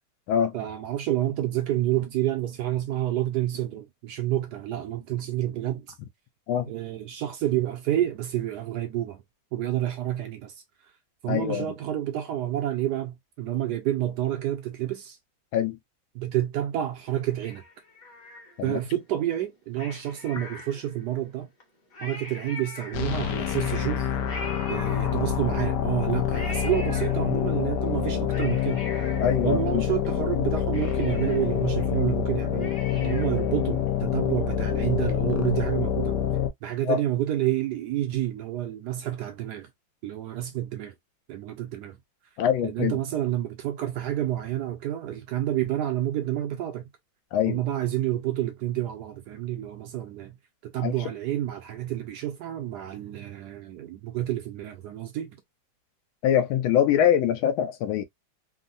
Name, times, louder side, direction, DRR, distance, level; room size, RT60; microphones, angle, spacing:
voice 1, 0.5-5.9 6.7-9.2 9.5-10.6 11.2-15.2 16.2-17.6 18.6-21.5 22.0-24.1 24.7-28.8 29.4-36.2 36.6-39.7 40.0-40.9 41.3-42.0 42.6-46.9 47.5-50.4 50.6-55.3, right 13 dB, 70° right, 1.0 m, -29 dB
voice 2, 11.3-11.7 15.5-15.8 18.6-18.8 29.2-29.8 36.8-37.0 42.4-43.0 47.3-47.6 50.8-50.9 56.2-58.0, left 9 dB, 90° left, 1.4 m, -24 dB
Cat, 17.4-18.9 19.7-21.1 21.6-21.7 21.9-23.4 24.3-25.6 26.3-27.6 28.0-30.1 30.4-30.5 30.7-33.5 33.9-34.0, left 3 dB, 50° left, 1.5 m, -42 dB
sound 1, 22.9-36.5, left 9 dB, 70° left, 1.1 m, -27 dB
3.6 x 2.1 x 2.4 m
omnidirectional pair, 2.1 m